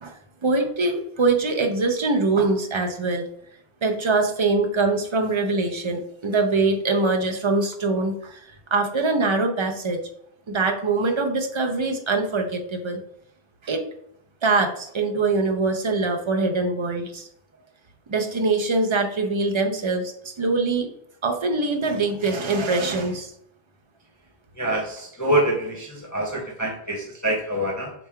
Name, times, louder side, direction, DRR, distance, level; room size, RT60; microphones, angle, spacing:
voice 1, 0.0-3.2 3.8-8.4 8.7-10.0 10.5-13.0 13.6-13.8 14.4-17.3 18.1-20.1 20.4-20.9 21.2-23.3, right 3 dB, 35° right, 4 dB, 0.5 m, -23 dB
voice 2, 24.6-27.9, right 1 dB, 20° left, -2 dB, 0.6 m, -25 dB
6.7 x 3.1 x 2.2 m, 0.70 s
omnidirectional pair, 1.1 m